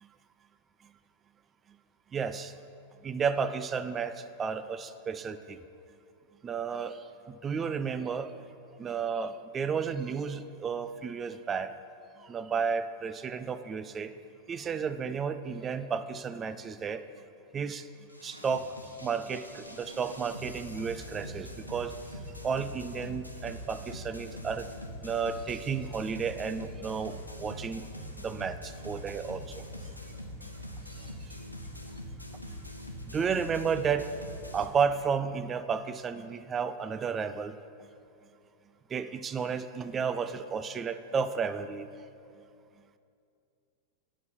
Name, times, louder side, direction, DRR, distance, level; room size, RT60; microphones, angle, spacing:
voice 1, 2.1-2.5 3.0-5.6 6.4-8.4 8.8-11.7 12.2-14.1 14.5-17.0 17.5-17.9 18.2-18.7 19.0-21.9 22.4-24.7 25.0-27.8 28.2-29.6 30.4-30.5 31.0-31.3 33.0-34.1 34.5-37.6 38.9-41.9, right 6 dB, 20° right, 12 dB, 0.4 m, -32 dB
sound 1, 18.1-34.7, equal, 85° left, 0.8 m, -43 dB
9.5 x 5.2 x 6.9 m, 2.5 s
figure-of-eight pair, 90°, 0 cm